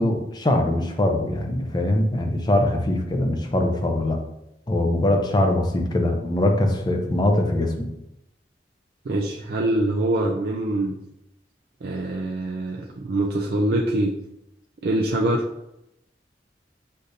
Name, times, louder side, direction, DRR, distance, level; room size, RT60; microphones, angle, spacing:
voice 1, 0.0-4.2 4.7-7.9, left 1 dB, 25° left, 3 dB, 0.6 m, -22 dB
voice 2, 9.1-10.9 11.8-14.1 14.8-15.5, right 1 dB, 60° right, -1 dB, 0.4 m, -24 dB
6.5 x 2.6 x 2.6 m, 0.85 s
head